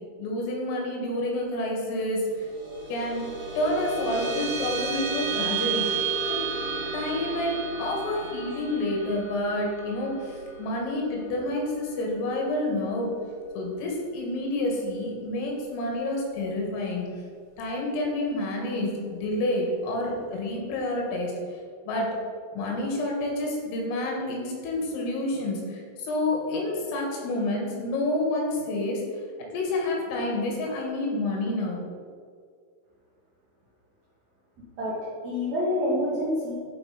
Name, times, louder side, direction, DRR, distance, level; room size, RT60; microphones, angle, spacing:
voice 1, 0.2-2.5 2.9-3.3 3.6-5.9 6.3-6.4 6.9-13.1 13.6-17.1 17.6-21.3 21.9-22.1 22.6-29.0 29.5-31.8, left 1 dB, 80° left, -1 dB, 4.4 m, -29 dB
sound 1, 2.3-13.1, right 5 dB, 60° right, 2.9 m, -33 dB
voice 2, 34.8-36.5, left 1 dB, 80° right, -8 dB, 1.6 m, -27 dB
11.5 x 4.9 x 5.1 m, 2.1 s
omnidirectional pair, 5.9 m